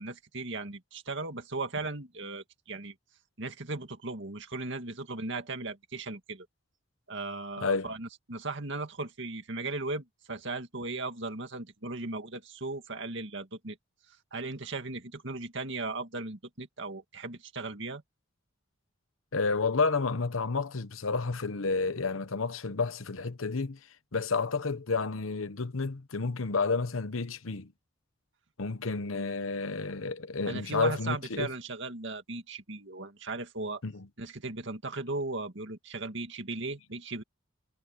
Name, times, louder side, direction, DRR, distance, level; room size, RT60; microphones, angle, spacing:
voice 1, 0.0-2.9 3.4-6.5 7.1-13.8 14.3-18.0 30.5-33.8 34.2-37.2, right 3 dB, 60° right, 2.2 m, -37 dB
voice 2, 7.6-7.9 19.3-23.8 24.1-27.7 28.6-31.5 33.8-34.1, left 4 dB, 85° left, 1.0 m, -30 dB
head